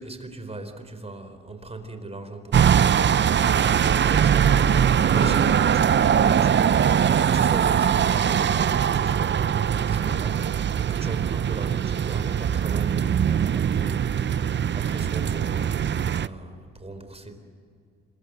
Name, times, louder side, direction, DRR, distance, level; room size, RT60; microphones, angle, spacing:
voice 1, 0.0-3.1 3.8-7.0 7.2-17.4, right 2 dB, 20° right, 8 dB, 4.3 m, -38 dB
sound 1, 2.5-16.3, right 8 dB, 40° right, 0.6 m, -21 dB
26.0 x 22.5 x 8.1 m, 2.3 s
cardioid pair, 90°, 30 cm